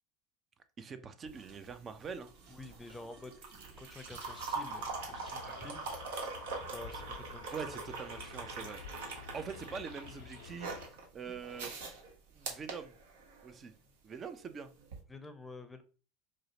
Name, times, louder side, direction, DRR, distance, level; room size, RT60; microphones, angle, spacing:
voice 1, 0.8-2.3 7.5-8.8 9.3-10.7 11.1-11.7 12.3-12.9 13.4-13.7 14.0-14.7, right 6 dB, 35° right, 10 dB, 0.5 m, -43 dB
sound 1, 1.2-13.6 14.8-15.0, right 4 dB, 75° right, 1.1 m, -43 dB
sound 2, 1.3-1.7 2.2-6.4, right 4 dB, 55° right, 1.8 m, -62 dB
voice 2, 2.5-3.4 3.7-5.9 6.6-7.8 15.1-15.8, left 2 dB, 10° left, 8 dB, 0.6 m, -49 dB
sound 3, 4.2-10.9, left 7 dB, 80° left, 0.4 m, -51 dB
4.7 x 2.1 x 2.9 m, 0.37 s
hypercardioid pair, 90°, 0 cm